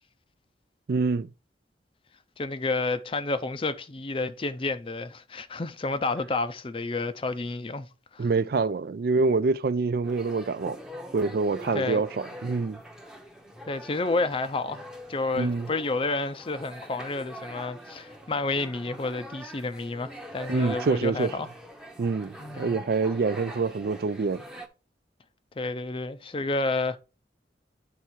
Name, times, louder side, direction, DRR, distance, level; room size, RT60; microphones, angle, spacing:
voice 1, 0.9-1.3 8.2-10.8 11.1-12.8 15.3-15.7 20.5-21.3 22.0-24.4, right 4 dB, 55° right, 0.4 m, -26 dB
voice 2, 2.4-7.9 8.1-8.3 11.7-12.0 13.7-21.5 22.4-22.8 25.6-27.0, left 3 dB, 30° left, 0.5 m, -30 dB
sound 1, 10.0-24.7, equal, 5° right, 0.8 m, -43 dB
9.6 x 3.6 x 4.4 m
head